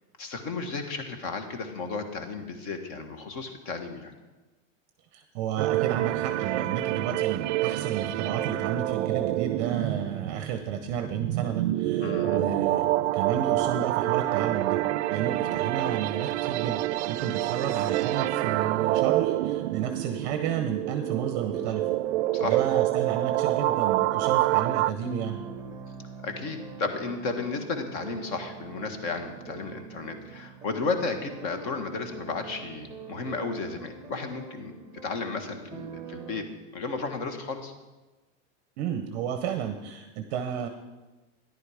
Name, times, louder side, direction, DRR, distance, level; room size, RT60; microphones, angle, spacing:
voice 1, 0.2-4.1 12.0-12.4 22.3-22.6 26.2-34.7 35.0-36.4 36.7-37.7, left 4 dB, 40° left, 7 dB, 1.5 m, -33 dB
voice 2, 5.1-14.8 15.1-16.8 17.1-21.8 22.4-25.4 38.8-40.7, right 8 dB, 35° right, 6 dB, 0.7 m, -32 dB
sound 1, 5.6-24.9, right 16 dB, 70° right, 0.5 m, -27 dB
sound 2, 20.4-36.4, right 5 dB, 10° right, 0.9 m, -44 dB
13.5 x 11.0 x 4.9 m, 1.2 s
supercardioid pair, 175°, 37 cm